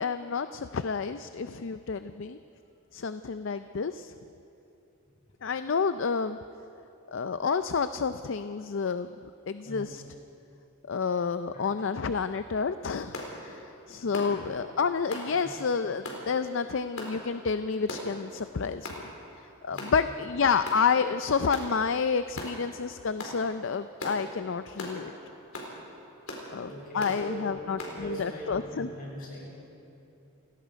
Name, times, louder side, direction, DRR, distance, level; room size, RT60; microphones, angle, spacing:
voice 1, 0.0-2.4 2.9-4.1 5.4-6.4 7.1-9.1 9.5-10.0 10.9-18.9 19.6-25.1 26.5-26.7 26.9-28.9, left 5 dB, 60° left, 11 dB, 0.5 m, -29 dB
voice 2, 9.6-10.0 11.5-11.7 14.0-14.4 19.7-20.0 26.3-29.5, equal, 45° left, -4 dB, 6.9 m, -41 dB
sound 1, 13.1-13.3 14.1-14.4 15.1-15.3 16.0-16.2 17.0-17.2 17.9-18.1 18.8-19.0 19.8-20.0 20.6-20.8 21.5-21.7 22.4-22.5 23.2-23.4 24.0-24.2 24.8-25.0 25.5-25.7 26.3-26.5 27.0-27.2 27.8-28.0, left 2 dB, 80° left, 4.1 m, -38 dB
29.0 x 17.5 x 5.2 m, 2.8 s
head